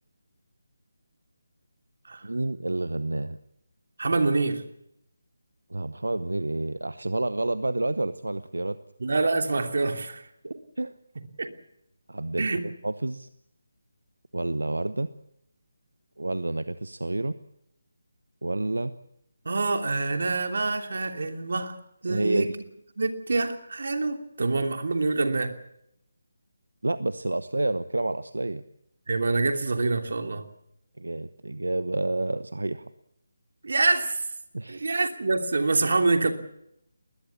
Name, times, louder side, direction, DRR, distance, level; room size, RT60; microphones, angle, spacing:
voice 1, 2.2-3.4 5.7-8.8 10.4-10.9 12.1-13.3 14.3-15.1 16.2-17.4 18.4-18.9 22.1-22.5 26.8-28.6 31.0-32.9 34.5-34.9, right 2 dB, 85° right, 13 dB, 1.0 m, -29 dB
voice 2, 4.0-4.6 9.0-10.2 11.4-11.5 12.4-12.6 19.4-21.8 22.0-22.6 23.0-25.6 29.1-30.5 33.6-34.2 34.7-36.3, right 3 dB, 65° right, 5 dB, 2.9 m, -26 dB
20.5 x 20.5 x 7.1 m, 0.78 s
figure-of-eight pair, 160°, 0 cm